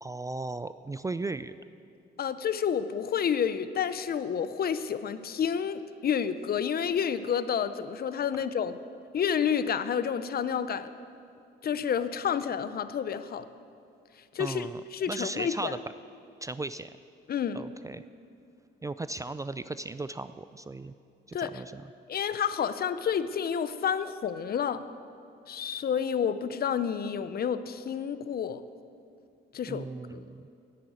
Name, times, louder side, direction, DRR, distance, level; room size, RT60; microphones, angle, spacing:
voice 1, 0.0-1.6 14.4-14.8 15.1-15.8 16.4-16.9 17.5-18.0 18.8-20.9 21.3-21.9 29.7-30.5, right 2 dB, 15° right, 13 dB, 0.3 m, -36 dB
voice 2, 2.2-8.8 9.1-10.9 11.6-13.5 14.3-15.8 17.3-17.6 21.3-21.5 22.1-24.8 25.5-28.6 29.5-29.9 30.1-30.2, left 7 dB, 50° left, 13 dB, 0.6 m, -29 dB
10.5 x 8.6 x 9.3 m, 2.5 s
cardioid pair, 90°, 20 cm